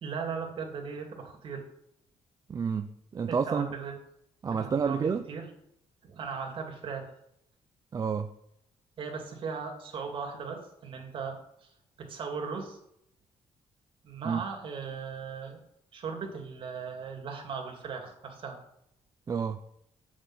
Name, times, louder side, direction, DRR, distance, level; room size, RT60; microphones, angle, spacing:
voice 1, 0.0-1.6 3.3-3.9 4.5-5.4 6.0-7.1 9.0-11.7 12.0-12.8 14.0-15.6 15.9-18.6, right 5 dB, 55° right, 2 dB, 2.7 m, -38 dB
voice 2, 2.5-3.7 4.4-5.2 7.9-8.3 14.2-14.4 19.3-19.6, right 6 dB, 35° right, 7 dB, 0.6 m, -29 dB
8.4 x 6.3 x 7.6 m, 0.76 s
cardioid pair, 125°, 11 cm